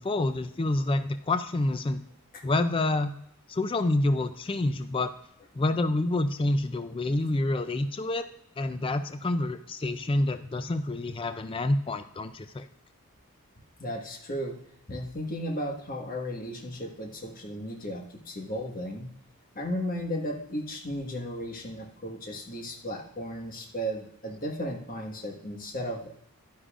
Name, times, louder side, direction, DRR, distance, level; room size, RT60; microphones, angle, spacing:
voice 1, 0.0-2.0 2.4-3.1 3.5-5.1 5.5-8.3 8.6-12.7, left 2 dB, 25° left, 9 dB, 0.3 m, -28 dB
voice 2, 13.8-14.6 14.9-19.1 19.5-26.1, equal, 40° left, 1 dB, 1.5 m, -35 dB
11.0 x 10.0 x 2.5 m, 0.73 s
head